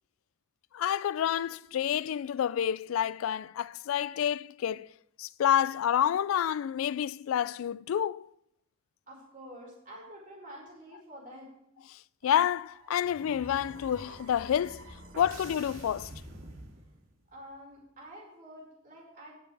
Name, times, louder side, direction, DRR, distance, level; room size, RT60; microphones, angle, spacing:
voice 1, 0.7-4.9 5.2-8.3 11.9-14.9 15.2-16.1, left 9 dB, 75° left, 0.3 m, -29 dB
voice 2, 9.1-11.5 17.3-19.4, equal, 40° right, 4.6 m, -48 dB
sound 1, 12.2-17.2, right 1 dB, 80° right, 2.4 m, -48 dB
21.0 x 7.1 x 3.4 m
head